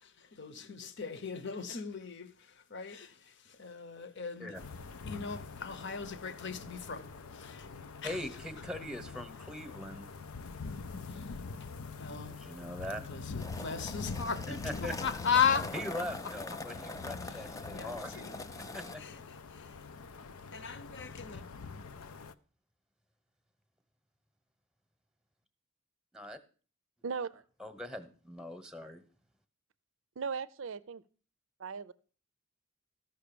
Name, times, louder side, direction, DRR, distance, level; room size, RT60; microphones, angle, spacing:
voice 1, 0.0-4.5 5.1-7.7 8.0-8.2 11.1-11.3 12.0-12.4 13.1-15.7 17.2-17.4 17.7-18.4 19.0-19.2 19.5-19.8 20.5-21.4, left 6 dB, 55° left, 0.9 m, -36 dB
sound 1, 4.5-22.3, left 4 dB, 80° left, 0.6 m, -44 dB
voice 2, 8.0-10.1 12.3-13.4 14.5-14.9 15.7-18.3 18.7-19.0 26.1-26.4 27.6-29.0, left 1 dB, 5° right, 1.0 m, -41 dB
sound 2, 13.4-19.0, left 2 dB, 15° left, 0.5 m, -43 dB
voice 3, 27.0-27.4 30.2-31.0 31.6-31.9, right 5 dB, 60° right, 0.5 m, -37 dB
14.0 x 5.9 x 6.8 m
head